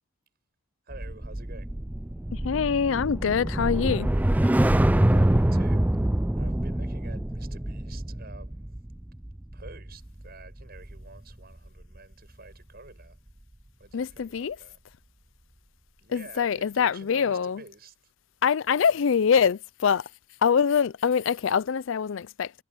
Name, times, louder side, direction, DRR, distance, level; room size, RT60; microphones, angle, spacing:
sound 1, 0.9-11.3 11.7-12.0, right 1 dB, 10° right, 0.4 m, -26 dB
voice 1, 0.9-1.7 5.1-8.7 9.5-13.2 13.8-14.8 16.0-18.1, right 3 dB, 50° right, 7.6 m, -49 dB
voice 2, 2.3-4.1 13.9-14.6 16.1-17.6 18.4-20.1 20.4-22.6, left 6 dB, 65° left, 0.4 m, -24 dB
head